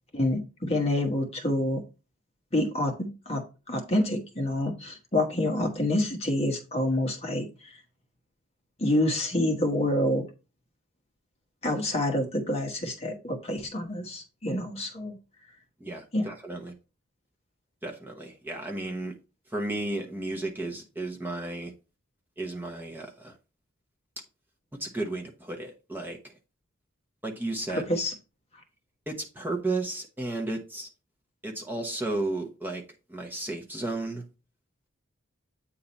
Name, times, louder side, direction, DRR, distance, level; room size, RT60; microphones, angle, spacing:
voice 1, 0.1-1.8 2.5-7.8 8.8-10.3 11.6-15.2 16.1-16.3 27.7-28.1, left 1 dB, 30° left, 1.2 m, -27 dB
voice 2, 15.8-16.7 17.8-19.1 19.5-21.7 22.4-23.4 24.8-26.3 27.2-27.8 29.1-30.9 31.4-32.8 33.1-34.2, right 2 dB, 10° right, 1.0 m, -33 dB
8.6 x 3.7 x 4.1 m
head